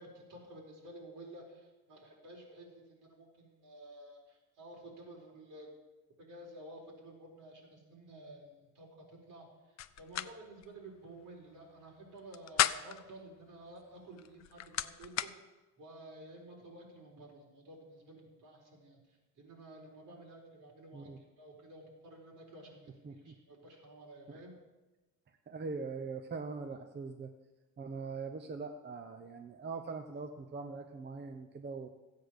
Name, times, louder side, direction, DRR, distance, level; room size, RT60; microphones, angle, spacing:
voice 1, 0.0-5.7 6.2-15.3 15.8-24.5, right 1 dB, 70° right, -1 dB, 4.5 m, -52 dB
sound 1, 9.8-10.3 10.6-10.7 12.2-13.1 14.2-15.3, left 12 dB, 55° left, 0.6 m, -33 dB
voice 2, 23.0-23.3 24.3-24.4 25.5-27.3 27.8-31.9, right 4 dB, 35° right, 6 dB, 0.8 m, -42 dB
15.5 x 8.6 x 6.4 m, 1.1 s
cardioid pair, 145°, 32 cm